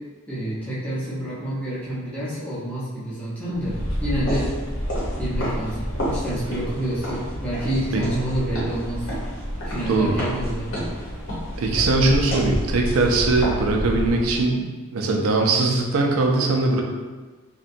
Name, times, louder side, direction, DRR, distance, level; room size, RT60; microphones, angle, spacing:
voice 1, 0.3-4.5 5.2-9.1 9.6-10.8, right 1 dB, 5° left, -10 dB, 0.7 m, -28 dB
sound 1, 3.5-14.4, equal, 70° left, 0.9 m, -29 dB
voice 2, 9.9-10.2 11.6-16.8, right 3 dB, 80° right, 1 dB, 0.4 m, -21 dB
2.7 x 2.2 x 2.6 m, 1.4 s
head